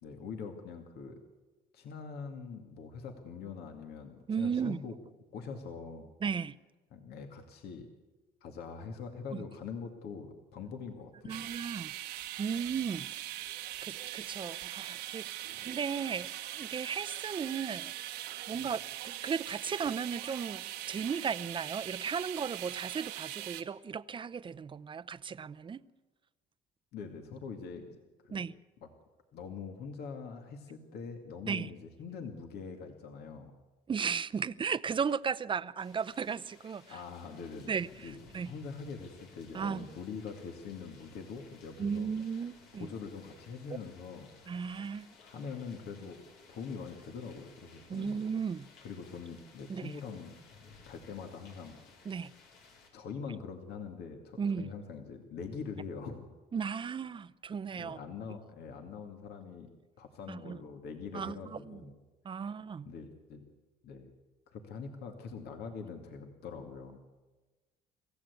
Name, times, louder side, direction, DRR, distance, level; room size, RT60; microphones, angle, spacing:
voice 1, 0.0-1.2 1.7-4.9 5.3-6.1 6.9-7.9 8.4-11.4 18.5-18.7 26.9-28.0 28.2-28.4 28.8-28.9 29.3-33.5 36.9-37.7 38.0-38.2 38.4-42.1 42.8-44.4 45.2-46.2 46.5-48.2 48.8-50.4 50.9-51.8 52.9-56.3 57.8-59.7 60.0-62.0 62.8-63.4 63.8-64.1 64.5-67.0, left 5 dB, 70° left, 2.3 m, -43 dB
voice 2, 4.3-4.8 6.2-6.6 11.2-11.9 12.4-13.1 13.4-13.5 13.8-15.3 15.6-25.8 28.3-28.5 31.5-31.7 33.9-37.0 37.7-38.5 39.5-39.8 41.8-42.9 44.5-45.1 47.9-48.7 49.7-49.9 52.1-52.3 54.4-54.7 56.5-58.0 60.3-60.6 61.1-61.4 61.7-61.8 62.2-62.9, right 6 dB, 30° right, 0.7 m, -35 dB
sound 1, 11.3-23.6, right 13 dB, 85° right, 1.4 m, -41 dB
sound 2, 35.8-52.9, left 4 dB, 90° left, 5.3 m, -58 dB
25.0 x 15.5 x 8.3 m
cardioid pair, 110°, 17 cm